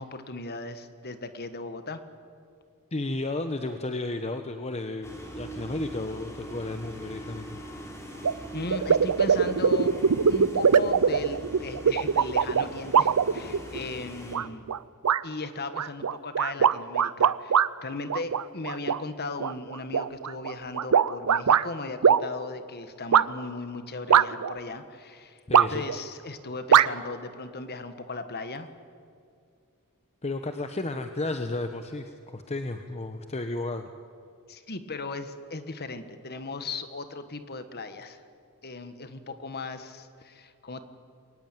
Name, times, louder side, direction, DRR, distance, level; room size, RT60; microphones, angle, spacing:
voice 1, 0.0-2.0 8.5-10.0 10.3-14.6 15.2-25.4 25.7-28.7 34.5-38.2 38.6-40.8, left 3 dB, 45° left, 10 dB, 1.6 m, -37 dB
voice 2, 2.9-7.6 25.5-25.8 30.2-33.9, left 2 dB, 30° left, 7 dB, 0.9 m, -33 dB
sound 1, 5.0-14.4, right 1 dB, 15° left, 3.7 m, -42 dB
sound 2, 8.2-8.3 8.7-13.8 14.3-14.8 15.0-15.2 15.7-17.7 18.1-19.0 19.4-21.6 22.0-22.2 23.1-23.2 24.1-24.6 25.5-26.0 26.7-26.9, right 7 dB, 85° right, 0.6 m, -21 dB
22.5 x 18.5 x 9.2 m, 2.3 s
head